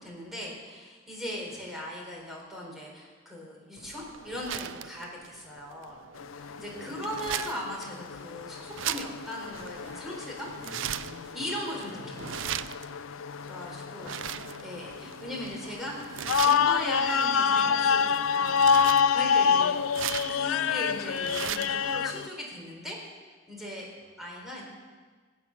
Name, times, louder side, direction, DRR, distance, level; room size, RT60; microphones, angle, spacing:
voice 1, 0.0-6.0 6.3-10.5 11.3-12.6 13.5-14.1 14.6-18.7 19.1-19.8 20.3-23.0 23.5-23.9 24.2-24.6, equal, ahead, -3 dB, 4.1 m, -38 dB
voice 2, 1.4-1.7 6.6-7.2 10.5-12.5 13.5-13.8 14.1-14.6 19.3-20.1 24.0-24.3, equal, 40° right, -2 dB, 4.5 m, -52 dB
sound 1, 3.8-21.8, right 10 dB, 70° right, 0.5 m, -39 dB
sound 2, 6.2-22.3, left 6 dB, 80° left, 0.4 m, -28 dB
19.5 x 8.2 x 7.3 m, 1.5 s
head